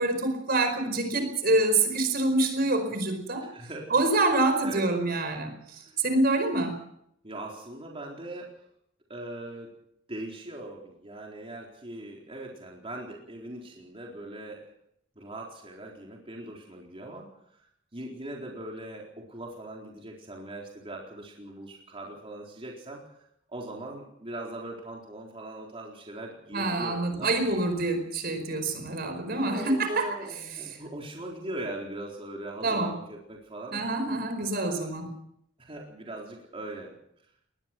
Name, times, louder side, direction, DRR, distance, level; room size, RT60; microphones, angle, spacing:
voice 1, 0.0-3.4 3.9-5.5 6.0-6.8 26.5-30.0 32.6-32.9 33.7-35.1, right 2 dB, 55° right, 7 dB, 4.8 m, -26 dB
voice 2, 3.4-3.9 4.6-4.8 5.8-6.0 7.2-8.5 9.1-9.7 10.1-14.7 15.2-17.7 17.9-23.0 23.5-27.3 29.0-33.8 34.5-35.0 35.6-37.0, right 1 dB, 30° right, -1 dB, 4.2 m, -40 dB
21.0 x 20.5 x 6.1 m, 0.73 s
head